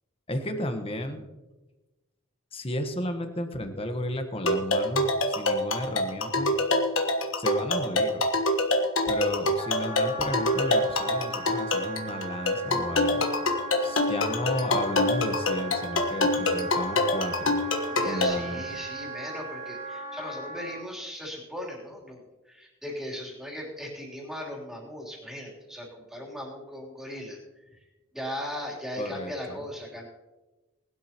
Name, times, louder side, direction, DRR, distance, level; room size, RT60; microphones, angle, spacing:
voice 1, 0.3-1.2 2.5-6.6 7.4-8.2 9.1-13.2 13.8-17.6 18.0-18.6 29.0-29.6, left 1 dB, 25° left, 6 dB, 1.2 m, -33 dB
sound 1, 4.4-18.3, left 2 dB, 65° left, 1.4 m, -26 dB
Wind instrument woodwind instrument, 9.6-20.9, right 2 dB, 35° right, 1.6 m, -38 dB
voice 2, 17.9-27.4 27.7-27.8 28.1-30.1, equal, ahead, -3 dB, 3.3 m, -38 dB
19.5 x 12.5 x 3.0 m, 1.1 s
head